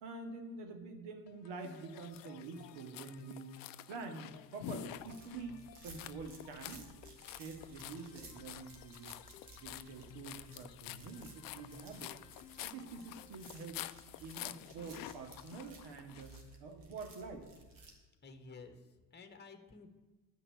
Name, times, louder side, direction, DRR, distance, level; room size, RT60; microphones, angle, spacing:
voice 1, 0.0-6.9 7.3-12.2 12.6-13.8 14.2-17.5, right 4 dB, 60° right, 6 dB, 2.0 m, -47 dB
sound 1, 1.3-13.6, left 9 dB, 85° left, 0.7 m, -60 dB
sound 2, 1.6-16.4, left 14 dB, 45° left, 0.6 m, -49 dB
sound 3, 4.8-17.9, right 3 dB, 45° right, 2.4 m, -58 dB
voice 2, 18.2-19.9, left 4 dB, 20° left, 8 dB, 1.4 m, -53 dB
11.0 x 5.8 x 8.6 m, 1.2 s
hypercardioid pair, 65°, 49 cm